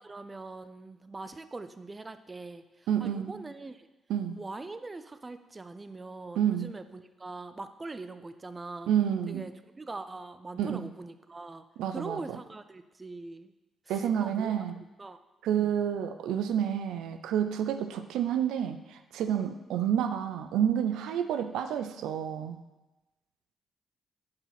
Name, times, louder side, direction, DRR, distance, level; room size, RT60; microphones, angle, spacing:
voice 1, 0.0-3.9 4.4-8.9 9.3-13.5 13.9-14.5 15.0-15.2 15.5-15.7, right 3 dB, 25° right, 10 dB, 0.6 m, -42 dB
voice 2, 2.9-3.3 4.1-4.4 6.4-6.7 8.9-9.5 10.6-10.9 11.8-12.2 13.9-14.8 15.4-22.6, right 9 dB, 85° right, 8 dB, 0.5 m, -29 dB
8.7 x 4.9 x 5.8 m, 1.0 s
cardioid pair, 70°, 0 cm